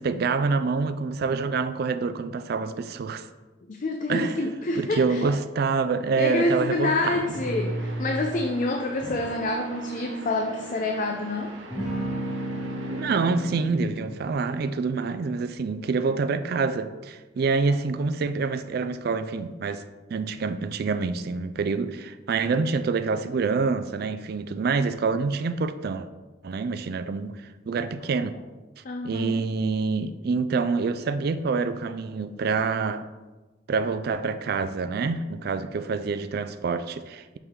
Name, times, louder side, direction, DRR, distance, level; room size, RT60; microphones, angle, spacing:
voice 1, 0.0-3.3 4.1-4.4 4.8-7.2 12.9-19.8 20.1-26.1 26.4-28.4 29.0-33.1 33.7-37.4, right 4 dB, 55° right, 0.4 m, -26 dB
voice 2, 3.7-5.4 6.2-11.6 17.7-17.8 28.8-29.4, left 2 dB, 45° left, 0.5 m, -27 dB
sound 1, 6.5-13.0, right 2 dB, 85° right, 0.8 m, -44 dB
sound 2, 7.3-8.4 9.0-11.3 11.7-14.3, right 1 dB, 5° right, 2.3 m, -33 dB
6.1 x 5.5 x 3.7 m
head